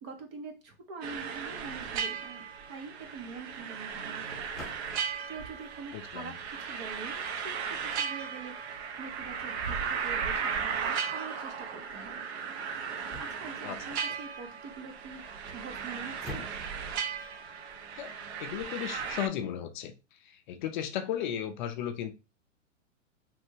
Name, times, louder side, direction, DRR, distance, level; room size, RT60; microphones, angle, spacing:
voice 1, 0.0-4.6 5.3-12.2 13.1-16.5, right 4 dB, 25° right, 0.4 m, -45 dB
sound 1, 1.0-19.3, right 6 dB, 55° right, 0.7 m, -36 dB
sound 2, 3.4-19.6, left 1 dB, ahead, 0.8 m, -53 dB
voice 2, 5.9-6.3 13.6-13.8 17.9-18.1 18.4-19.9 20.2-22.1, left 10 dB, 40° left, 0.4 m, -35 dB
3.3 x 2.1 x 3.1 m
hypercardioid pair, 125°, 39 cm